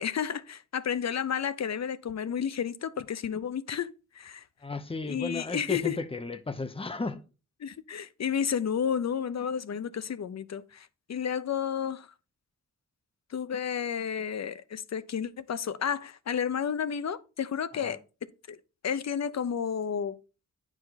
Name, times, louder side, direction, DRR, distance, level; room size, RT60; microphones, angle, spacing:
voice 1, 0.0-4.4 5.0-6.0 7.6-12.1 13.3-18.0 18.5-18.6 18.8-20.2, left 8 dB, 60° left, 0.6 m, -31 dB
voice 2, 4.6-7.2 17.7-18.0, left 3 dB, 20° left, 0.7 m, -34 dB
9.6 x 5.0 x 3.9 m
wide cardioid pair, 155°, 31 cm